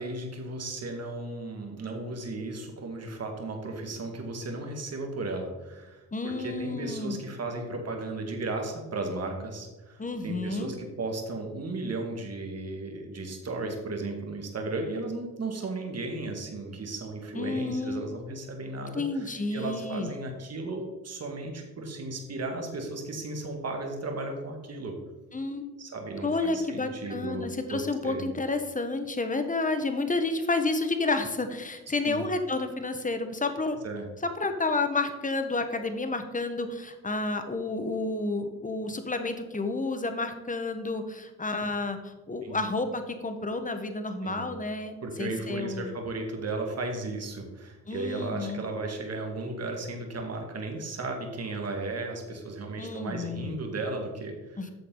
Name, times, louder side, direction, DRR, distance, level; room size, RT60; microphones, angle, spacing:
voice 1, 0.0-25.0 25.8-28.3 32.0-32.3 33.8-34.1 42.4-42.6 44.2-44.5 45.0-54.7, right 2 dB, 40° right, 2 dB, 2.1 m, -35 dB
voice 2, 6.1-7.2 10.0-10.7 17.3-18.1 18.9-20.1 25.3-25.8 26.2-33.8 34.2-45.9 47.9-48.6 52.8-53.6 54.6-54.7, left 3 dB, 20° left, 8 dB, 1.3 m, -30 dB
9.3 x 6.6 x 3.9 m, 1.2 s
supercardioid pair, 70°, 38 cm